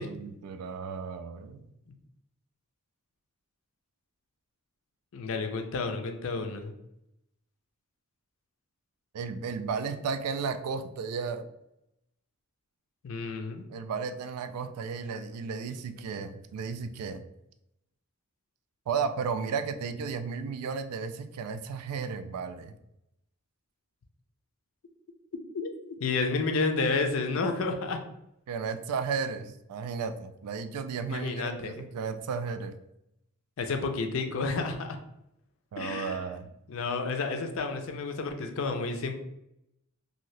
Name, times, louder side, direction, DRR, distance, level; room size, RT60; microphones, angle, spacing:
voice 1, 0.0-1.6 9.1-11.4 13.7-17.2 18.9-22.8 28.5-32.8 35.7-36.5, right 5 dB, 90° right, 9 dB, 0.3 m, -34 dB
voice 2, 5.1-6.7 13.0-13.6 25.5-25.7 26.0-28.0 31.1-31.7 33.6-35.0 35.8-36.3 36.7-39.1, left 4 dB, 60° left, 5 dB, 0.4 m, -30 dB
2.7 x 2.6 x 3.1 m, 0.81 s
head